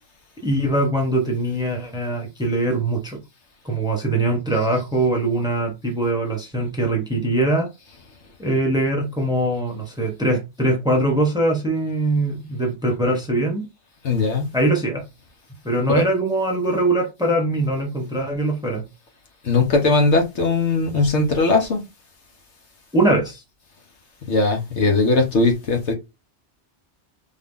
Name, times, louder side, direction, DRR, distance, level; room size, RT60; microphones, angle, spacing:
voice 1, 0.4-3.2 3.6-7.7 8.4-13.7 14.5-15.0 15.6-18.9 22.9-23.4, right 1 dB, 5° right, 0.8 m, -22 dB
voice 2, 14.0-14.5 19.4-21.8 24.3-25.9, left 3 dB, 75° left, 1.3 m, -19 dB
3.7 x 2.7 x 3.6 m
omnidirectional pair, 1.2 m